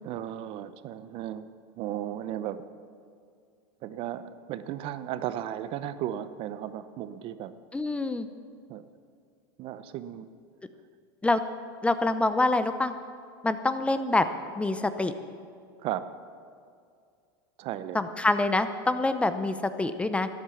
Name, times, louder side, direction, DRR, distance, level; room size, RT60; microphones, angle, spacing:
voice 1, 0.0-1.5 1.8-2.6 3.8-7.5 8.7-8.8 9.6-10.3 15.8-16.0 17.6-18.2, right 11 dB, 50° right, 13 dB, 0.7 m, -35 dB
voice 2, 7.7-8.3 11.2-11.4 11.8-12.9 13.4-14.2 14.6-15.1 17.9-20.3, left 2 dB, 10° left, 10 dB, 0.7 m, -26 dB
12.5 x 11.0 x 7.0 m, 2.3 s
supercardioid pair, 115°, 12 cm